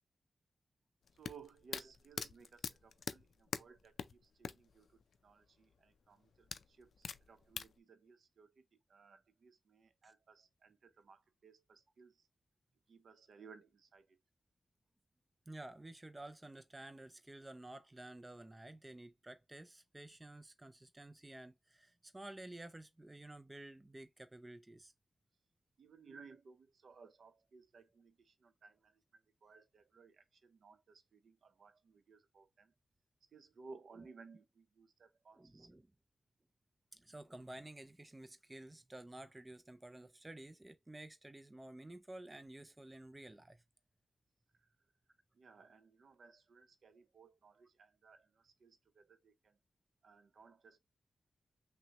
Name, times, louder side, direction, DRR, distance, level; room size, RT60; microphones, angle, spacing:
sound 1, 1.1-4.7 5.0-5.1 6.5-7.7, left 6 dB, 75° left, 0.3 m, -42 dB
voice 1, 1.2-12.3 12.9-14.2 25.8-32.7 33.3-35.7 45.3-49.6 50.0-50.8, right 5 dB, 70° right, 0.7 m, -60 dB
voice 2, 15.5-24.9 34.0-34.1 35.3-35.9 36.9-43.6, right 1 dB, 15° right, 0.4 m, -52 dB
5.8 x 2.1 x 2.8 m
wide cardioid pair, 130°, 0 cm